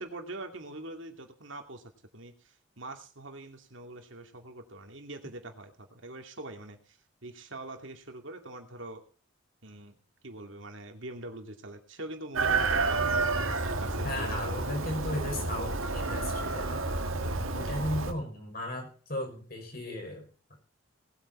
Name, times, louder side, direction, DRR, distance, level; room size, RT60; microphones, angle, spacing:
voice 1, 0.0-9.0 9.6-10.0 10.2-14.7 17.6-17.9, right 2 dB, 70° right, 5 dB, 2.5 m, -44 dB
Chicken rooster, 12.3-18.1, right 3 dB, 85° right, 1.8 m, -30 dB
voice 2, 14.0-16.8 17.5-20.3, left 1 dB, 45° left, 1 dB, 5.5 m, -36 dB
19.0 x 9.0 x 4.4 m, 0.39 s
head